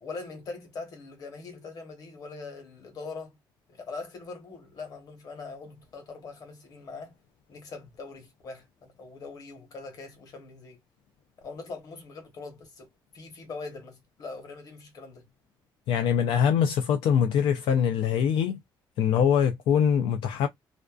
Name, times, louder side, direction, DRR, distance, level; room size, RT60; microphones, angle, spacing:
voice 1, 0.0-3.4 3.7-7.1 7.5-10.8 11.4-12.9 13.1-15.3, left 4 dB, 45° left, 1.1 m, -42 dB
voice 2, 15.9-18.6 19.0-20.5, left 8 dB, 75° left, 0.4 m, -23 dB
2.5 x 2.2 x 2.3 m
cardioid pair, 165°, 9 cm